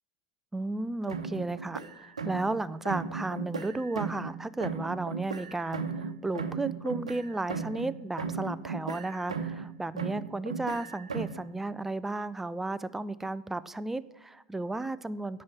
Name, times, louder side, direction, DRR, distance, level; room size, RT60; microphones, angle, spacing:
voice 1, 0.5-15.4, right 2 dB, 10° right, 15 dB, 0.5 m, -34 dB
sound 1, 1.1-2.6 2.9-4.4 4.6-9.7 10.0-11.4, right 5 dB, 85° right, 0.8 m, -36 dB
9.5 x 5.6 x 8.2 m, 0.90 s
hypercardioid pair, 90°, 3 cm